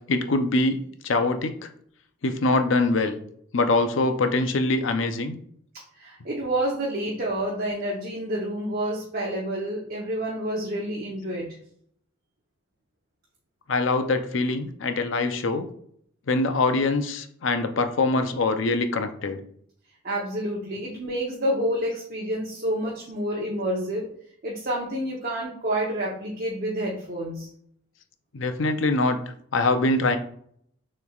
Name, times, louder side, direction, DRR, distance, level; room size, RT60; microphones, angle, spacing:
voice 1, 0.1-1.7 2.2-3.2 3.5-5.3 13.7-15.7 16.3-19.4 28.3-29.2 29.5-30.2, left 2 dB, 70° left, 8 dB, 0.6 m, -23 dB
voice 2, 5.9-11.5 20.0-24.1 24.4-27.5, right 1 dB, 50° right, -2 dB, 0.9 m, -28 dB
6.8 x 3.2 x 2.4 m, 0.65 s
head